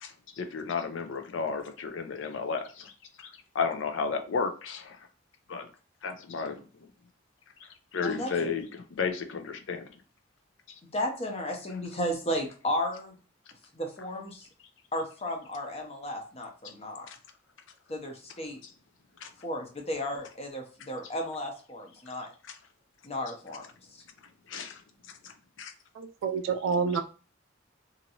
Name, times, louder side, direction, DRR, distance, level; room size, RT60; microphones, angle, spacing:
voice 1, 0.0-2.9 3.2-5.0 5.5-5.7 6.0-6.6 7.6-9.9 16.6-16.7 17.1-17.2 19.2-19.3 22.1-22.2 22.5-22.6 24.5-24.8 25.2-25.3 25.6-25.7, left 5 dB, 70° left, 7 dB, 0.5 m, -33 dB
voice 2, 10.9-13.1 13.7-14.5 14.9-17.1 17.9-18.6 19.4-22.3 23.0-23.6 23.9-24.0, left 1 dB, 30° left, 2 dB, 0.7 m, -34 dB
voice 3, 26.0-27.0, right 5 dB, 80° right, 7 dB, 0.3 m, -28 dB
2.9 x 2.6 x 2.7 m, 0.37 s
head